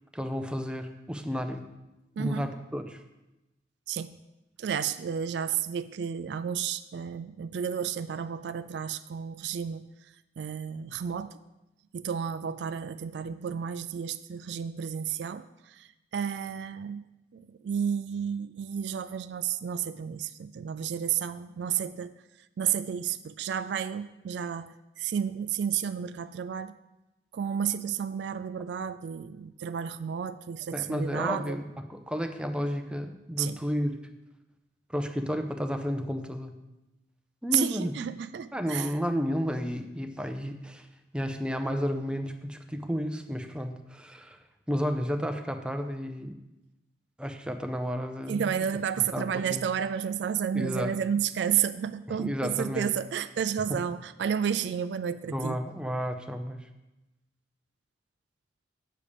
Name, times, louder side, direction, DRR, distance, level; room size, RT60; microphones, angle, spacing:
voice 1, 0.1-1.7 2.2-3.0 30.7-34.0 34.9-36.5 37.4-37.9 38.5-40.9 41.1-44.4 44.7-46.3 47.2-48.5 49.1-49.7 50.5-50.9 52.2-52.9 53.7-53.8 55.3-56.7, equal, 5° right, 6 dB, 0.6 m, -32 dB
voice 2, 2.2-2.5 3.9-4.2 4.6-11.4 11.9-17.0 17.3-22.1 22.6-26.7 27.3-31.6 33.4-33.6 37.5-38.9 48.3-55.6, right 8 dB, 65° right, 12 dB, 0.3 m, -31 dB
8.5 x 6.6 x 5.2 m, 0.98 s
head